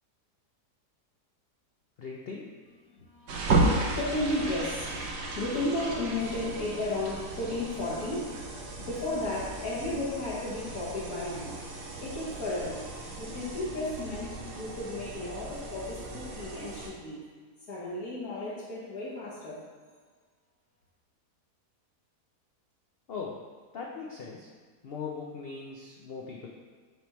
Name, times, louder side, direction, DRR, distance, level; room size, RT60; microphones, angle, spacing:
voice 1, 2.0-2.5 23.1-23.5 23.7-24.5 24.8-26.5, left 5 dB, 85° left, -2 dB, 0.5 m, -39 dB
voice 2, 2.8-8.4 8.8-11.6 12.0-12.9 13.2-17.2 17.7-19.7, left 2 dB, 65° left, -8 dB, 1.7 m, -34 dB
sound 1, 3.3-16.9, right 2 dB, 75° right, 1.4 m, -34 dB
9.0 x 3.4 x 3.0 m, 1.5 s
omnidirectional pair, 1.7 m